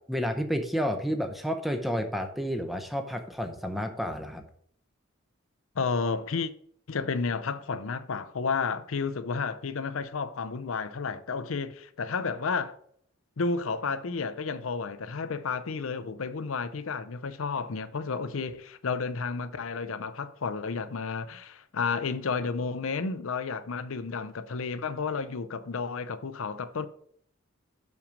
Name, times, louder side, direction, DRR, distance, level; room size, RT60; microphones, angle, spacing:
voice 1, 0.1-4.4, equal, ahead, 0.7 m, -30 dB
voice 2, 5.8-6.5 6.9-12.8 13.4-26.9, left 5 dB, 75° left, 0.6 m, -31 dB
6.5 x 5.9 x 5.2 m
head